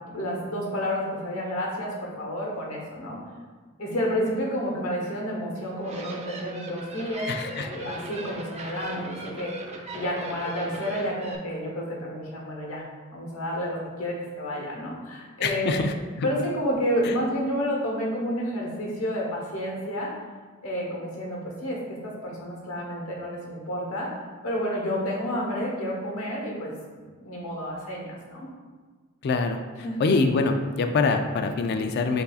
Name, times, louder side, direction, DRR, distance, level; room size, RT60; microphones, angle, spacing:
voice 1, 0.1-3.2 3.8-9.5 9.9-12.8 13.1-15.9 16.2-20.1 20.6-24.1 24.4-26.7 27.2-28.5 29.8-30.1, equal, 90° left, -2 dB, 1.1 m, -30 dB
sound 1, 5.6-11.4, right 1 dB, 30° right, 0.5 m, -38 dB
voice 2, 7.3-7.7 15.4-16.3 17.0-17.1 29.2-29.6 30.0-32.2, left 4 dB, 50° left, 6 dB, 0.3 m, -24 dB
7.8 x 2.6 x 2.4 m, 1.4 s
head